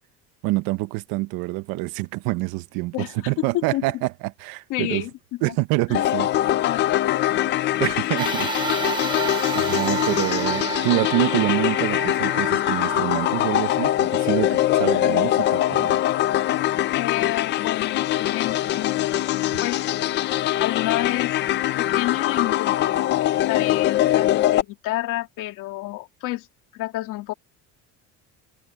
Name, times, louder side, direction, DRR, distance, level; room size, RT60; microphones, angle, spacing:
voice 1, 0.4-5.0 5.4-6.5 7.8-8.8 9.5-16.0, right 21 dB, 80° right, 0.9 m, -26 dB
voice 2, 2.9-3.9 4.7-5.1 5.9-6.1 6.5-7.2 16.9-19.9 20.6-21.4 21.8-26.5 26.7-27.3, left 17 dB, 60° left, 2.5 m, -29 dB
sound 1, 5.9-24.6, left 13 dB, 30° left, 0.4 m, -23 dB
sound 2, 8.2-16.8 17.4-17.5 18.6-18.7, right 5 dB, 15° right, 0.7 m, -32 dB
cardioid pair, 180°, 35 cm